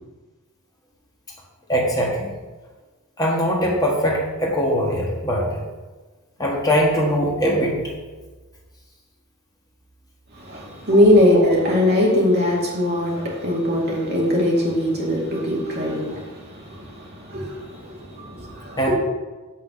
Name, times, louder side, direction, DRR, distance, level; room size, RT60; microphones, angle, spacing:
voice 1, 1.7-2.3 3.2-5.6 6.4-7.8 18.8-18.9, equal, 15° left, -2 dB, 1.4 m, -21 dB
voice 2, 10.4-18.9, left 1 dB, 45° right, -3 dB, 2.4 m, -21 dB
6.9 x 5.8 x 6.8 m, 1.3 s
head